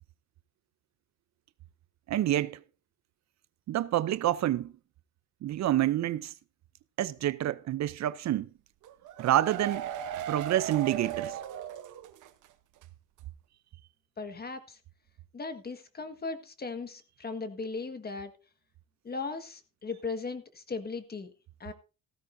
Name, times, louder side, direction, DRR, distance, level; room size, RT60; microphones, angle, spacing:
voice 1, 2.1-2.6 3.7-4.7 5.4-6.3 7.0-8.5 9.2-9.8 10.3-11.4, right 13 dB, 65° right, 0.6 m, -28 dB
sound 1, 8.8-12.5 12.8-12.9 13.2-13.3, right 10 dB, 80° right, 1.0 m, -37 dB
voice 2, 14.2-14.8 15.3-18.3 19.0-21.3 21.6-21.7, left 4 dB, 30° left, 1.6 m, -37 dB
15.5 x 13.5 x 2.7 m
cardioid pair, 90°, 30 cm